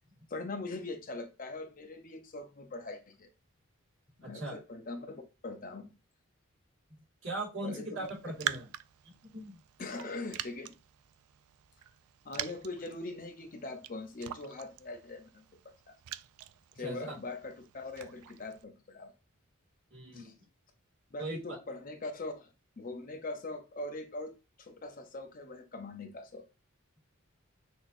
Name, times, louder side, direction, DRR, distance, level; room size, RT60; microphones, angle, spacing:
voice 1, 0.3-3.3 4.2-5.9 7.6-8.1 9.8-10.8 12.2-16.0 16.8-19.1 20.1-20.3 21.1-26.5, left 2 dB, 40° left, 0.6 m, -42 dB
voice 2, 4.2-4.6 7.2-8.7 9.3-9.6 16.8-17.2 19.9-20.3 21.2-21.6, right 2 dB, 60° right, 2.2 m, -39 dB
Raindrop, 8.0-18.6, right 12 dB, 90° right, 0.3 m, -44 dB
6.0 x 2.8 x 2.6 m
head